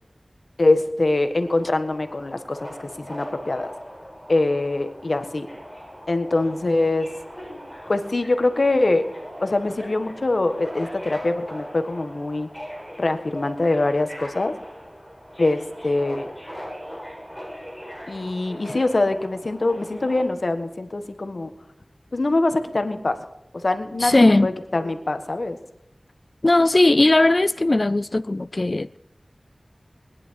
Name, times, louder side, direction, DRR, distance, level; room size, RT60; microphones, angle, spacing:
voice 1, 0.6-3.7 4.3-5.5 6.1-7.1 7.9-9.1 9.4-12.5 13.0-14.5 15.4-16.3 18.1-21.5 22.1-23.2 23.5-25.6, left 2 dB, 65° left, 1.5 m, -23 dB
Subway metro underground, 1.4-20.2, equal, 10° right, 7.6 m, -40 dB
voice 2, 24.0-24.5 26.4-29.0, left 2 dB, 50° left, 0.4 m, -18 dB
20.5 x 11.0 x 4.7 m
wide cardioid pair, 45°, 0 cm